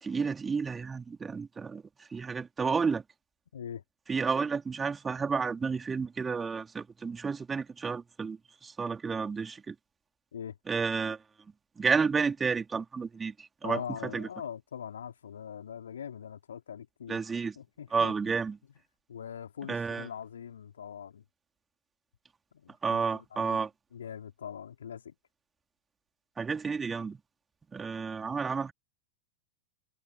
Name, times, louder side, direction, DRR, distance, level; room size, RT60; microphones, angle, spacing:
voice 1, 0.0-1.8 2.1-3.0 4.1-9.7 10.7-11.2 11.8-14.3 17.1-17.5 17.9-18.6 19.7-20.1 22.8-23.7 26.4-27.2 27.7-28.7, right 5 dB, 15° right, 4.0 m, -31 dB
voice 2, 3.5-3.8 10.3-10.6 13.6-17.2 17.5-18.1 19.1-21.2 22.5-25.1, left 8 dB, 65° left, 3.1 m, -42 dB
figure-of-eight pair, 90°, 0 cm